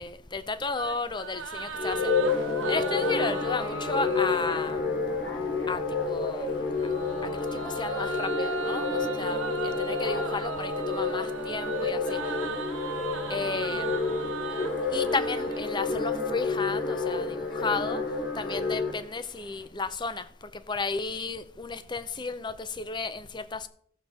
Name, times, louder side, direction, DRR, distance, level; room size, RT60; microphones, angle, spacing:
voice 1, 0.0-2.1 2.7-4.8 5.7-5.8 6.1-6.5 7.3-8.9 9.2-9.4 9.6-12.2 13.3-13.9 14.9-18.0 18.4-20.2 20.7-23.7, left 4 dB, 25° left, 0.6 m, -33 dB
sound 1, 0.7-4.7 6.5-16.1, right 5 dB, 90° right, 1.1 m, -37 dB
sound 2, 1.5-19.7, right 1 dB, 80° left, 2.1 m, -44 dB
sound 3, 1.8-18.9, left 4 dB, 55° left, 2.4 m, -30 dB
15.0 x 7.0 x 4.3 m
head